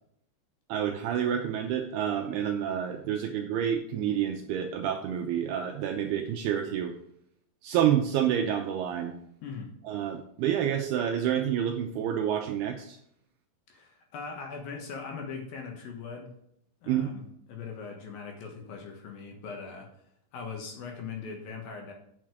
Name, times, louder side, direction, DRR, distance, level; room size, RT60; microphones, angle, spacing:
voice 1, 0.7-6.9 7.6-9.1 9.8-13.0 16.9-17.1, right 9 dB, 80° right, 4 dB, 2.3 m, -28 dB
voice 2, 9.4-9.7 13.7-16.3 16.8-19.9 20.3-21.9, left 5 dB, 65° left, 2 dB, 2.7 m, -40 dB
8.8 x 6.6 x 4.9 m, 0.71 s
omnidirectional pair, 5.2 m